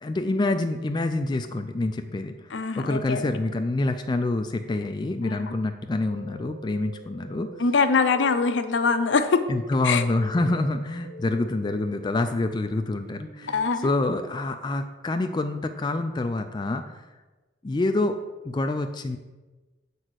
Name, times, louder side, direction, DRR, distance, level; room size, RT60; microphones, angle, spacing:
voice 1, 0.0-7.5 9.5-16.8 17.6-18.2 18.4-19.2, left 2 dB, 25° left, 6 dB, 0.3 m, -27 dB
voice 2, 2.5-3.3 5.2-5.6 7.6-9.4 9.8-10.0 13.5-13.9, left 4 dB, 65° left, 9 dB, 0.6 m, -23 dB
sound 1, 6.0-13.6, left 1 dB, 70° right, 2.0 m, -45 dB
7.6 x 4.1 x 6.2 m, 1.2 s
head